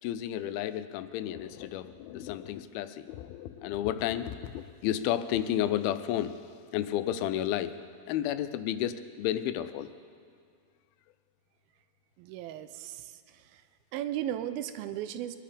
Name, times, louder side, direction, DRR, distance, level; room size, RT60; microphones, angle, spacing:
voice 1, 0.0-7.8 8.1-9.9, left 11 dB, 85° left, 12 dB, 2.5 m, -32 dB
voice 2, 12.2-13.6 13.9-15.4, right 11 dB, 90° right, 11 dB, 2.5 m, -36 dB
23.0 x 11.5 x 5.1 m, 2.3 s
omnidirectional pair, 4.3 m